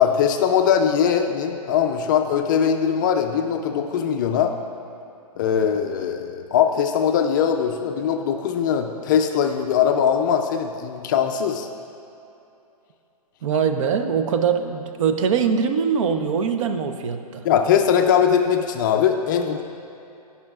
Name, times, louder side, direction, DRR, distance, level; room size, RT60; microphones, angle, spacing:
voice 1, 0.0-4.6 5.4-11.7 17.4-19.6, left 8 dB, 30° left, 5 dB, 0.4 m, -21 dB
voice 2, 13.4-17.4, right 6 dB, 50° right, 7 dB, 0.6 m, -22 dB
16.5 x 5.6 x 2.4 m, 2.8 s
hypercardioid pair, 145°, 20 cm